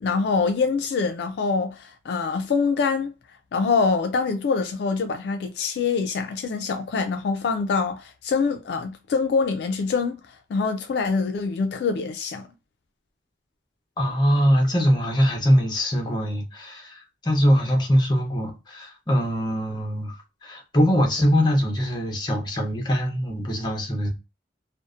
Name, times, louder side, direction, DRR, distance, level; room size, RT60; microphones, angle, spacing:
voice 1, 0.0-3.1 3.5-12.5, left 4 dB, 65° left, 0.3 m, -25 dB
voice 2, 14.0-24.1, equal, 25° left, 0.7 m, -22 dB
2.6 x 2.0 x 2.3 m
head